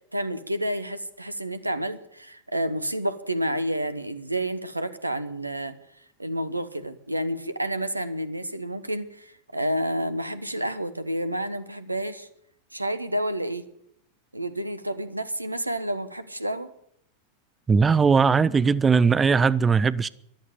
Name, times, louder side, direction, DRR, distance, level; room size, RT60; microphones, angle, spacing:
voice 1, 0.1-5.8 6.2-12.3 12.7-13.7 14.3-16.7, right 1 dB, 85° right, 1.1 m, -29 dB
voice 2, 17.7-20.1, right 5 dB, 15° right, 0.6 m, -19 dB
14.5 x 11.0 x 9.1 m
figure-of-eight pair, 90°, 0 cm